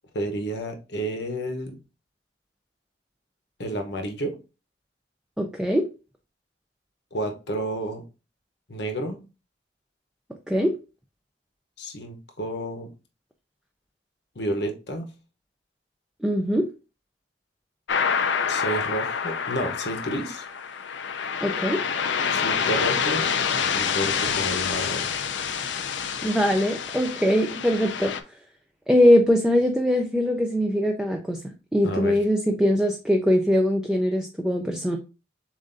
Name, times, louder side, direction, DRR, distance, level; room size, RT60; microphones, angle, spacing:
voice 1, 0.1-1.8 3.6-4.4 7.1-8.0 8.7-9.2 11.8-12.9 14.3-15.1 18.5-20.4 22.3-23.3 23.7-25.1 31.8-32.1, right 1 dB, 70° left, 4 dB, 1.0 m, -30 dB
voice 2, 5.4-5.9 10.5-10.8 16.2-16.7 21.4-21.8 26.2-28.1 28.9-31.4 31.7-35.0, equal, 5° right, 2 dB, 0.4 m, -22 dB
sound 1, 17.9-28.2, left 6 dB, 85° left, 0.5 m, -27 dB
7.1 x 2.6 x 2.6 m, 0.31 s
head